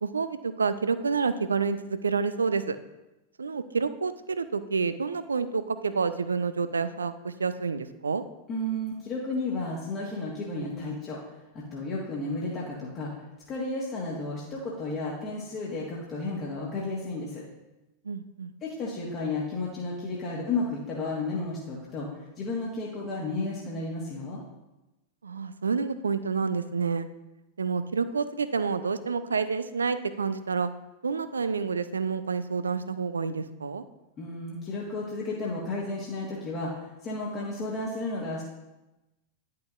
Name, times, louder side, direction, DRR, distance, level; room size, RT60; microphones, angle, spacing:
voice 1, 0.0-2.8 3.4-8.2 18.0-18.5 25.2-27.1 27.6-30.7 31.0-33.8, right 5 dB, 75° right, 13 dB, 0.4 m, -29 dB
voice 2, 8.5-11.2 11.5-13.1 13.5-17.4 18.6-24.4 34.2-38.4, left 2 dB, 30° left, -4 dB, 1.4 m, -33 dB
10.5 x 5.7 x 2.5 m, 1.0 s
figure-of-eight pair, 90°, 0 cm